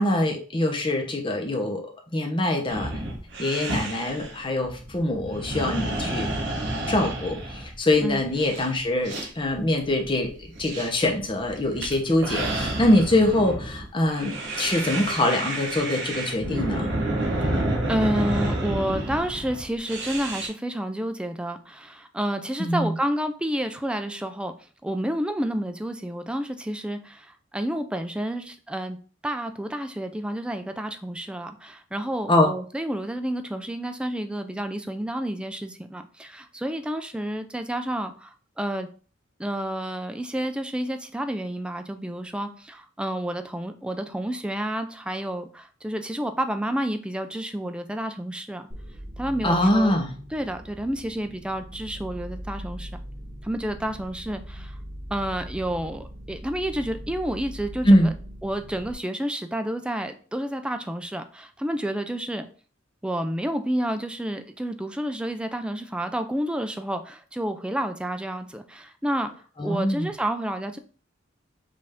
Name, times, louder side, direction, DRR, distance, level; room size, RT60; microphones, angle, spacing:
voice 1, 0.0-1.8 2.1-2.9 3.4-6.3 6.9-16.9 22.6-23.0 32.3-32.5 49.4-50.1 57.8-58.1 69.6-70.1, left 1 dB, 25° left, 2 dB, 0.9 m, -23 dB
sound 1, 2.7-20.5, right 1 dB, 65° right, 1.1 m, -30 dB
voice 2, 17.9-24.5 24.8-29.0 29.2-38.9 39.4-48.7 49.2-49.9 50.3-52.9 53.4-54.8 55.1-58.1 58.4-62.5 63.0-69.3 69.6-70.8, right 1 dB, 5° right, 7 dB, 0.4 m, -30 dB
sound 2, 48.7-58.9, equal, 35° right, 1.0 m, -40 dB
5.4 x 2.7 x 3.5 m, 0.40 s
head